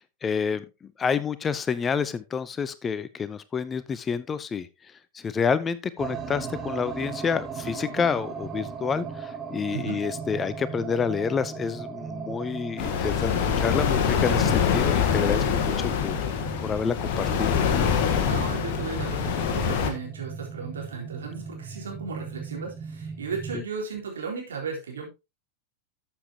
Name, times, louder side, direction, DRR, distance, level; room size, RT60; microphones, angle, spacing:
voice 1, 0.2-0.6 1.0-4.7 5.1-13.3 13.6-16.2 16.6-17.6 23.5-23.6, left 6 dB, 20° left, 0.6 m, -28 dB
sound 1, 6.0-23.6, right 5 dB, 20° right, 1.6 m, -38 dB
voice 2, 9.7-10.0 14.2-14.4 18.3-25.1, right 5 dB, 65° right, 3.8 m, -35 dB
sound 2, 12.8-19.9, left 7 dB, 45° left, 1.8 m, -24 dB
13.0 x 7.3 x 2.9 m
figure-of-eight pair, 90°, 0 cm